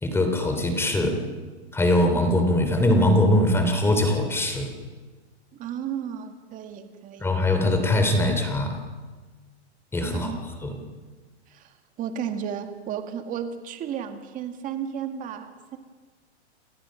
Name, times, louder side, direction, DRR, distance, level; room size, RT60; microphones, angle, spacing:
voice 1, 0.0-1.2 1.7-4.7 7.2-8.8 9.9-10.3 10.6-10.8, left 1 dB, 5° left, 5 dB, 3.0 m, -22 dB
voice 2, 5.5-7.3 10.1-10.4 11.5-15.8, right 8 dB, 25° right, 7 dB, 1.9 m, -33 dB
29.5 x 19.0 x 6.4 m, 1.4 s
hypercardioid pair, 155°, 34 cm